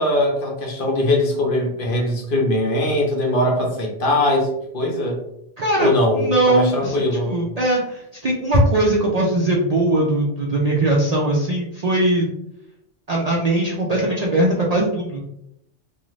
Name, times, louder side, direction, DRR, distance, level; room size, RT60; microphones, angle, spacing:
voice 1, 0.0-5.2 5.8-7.4, left 1 dB, 55° left, 0 dB, 0.7 m, -21 dB
voice 2, 5.6-12.3 13.1-15.2, right 2 dB, 55° right, -3 dB, 0.4 m, -20 dB
2.5 x 2.4 x 3.1 m, 0.78 s
omnidirectional pair, 1.2 m